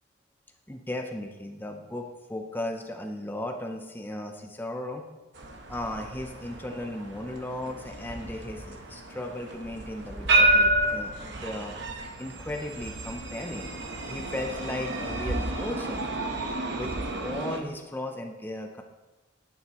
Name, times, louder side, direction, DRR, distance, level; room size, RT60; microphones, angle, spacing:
voice 1, 0.7-5.0 5.7-11.7 12.2-13.7 14.1-16.0 16.7-16.9 17.2-18.8, left 1 dB, 10° left, 3 dB, 0.6 m, -36 dB
sound 1, 5.4-17.6, right 1 dB, 60° right, 1.0 m, -30 dB
11.5 x 9.2 x 3.0 m, 1.2 s
head